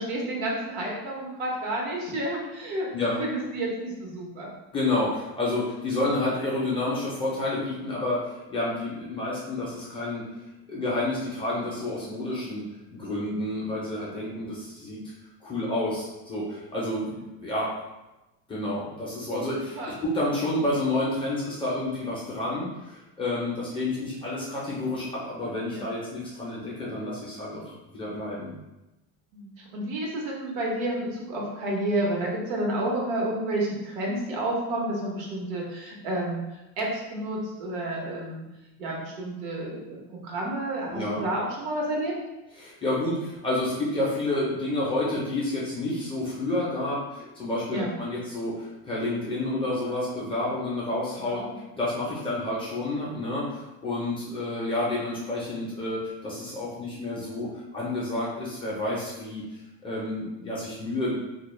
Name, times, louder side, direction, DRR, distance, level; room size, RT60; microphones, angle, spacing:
voice 1, 0.0-4.5 17.1-17.2 19.7-19.9 25.7-25.9 29.3-36.4 36.8-38.4 38.8-42.1 47.1-47.3 47.7-47.9 51.2-51.6, right 1 dB, 85° right, -2 dB, 0.9 m, -30 dB
voice 2, 4.7-10.3 10.7-15.0 15.4-17.7 18.5-28.5 40.9-41.2 42.6-51.4 51.7-59.4 59.8-61.2, left 2 dB, 15° left, -7 dB, 0.4 m, -29 dB
2.2 x 2.1 x 3.0 m, 1.0 s
cardioid pair, 155°, 39 cm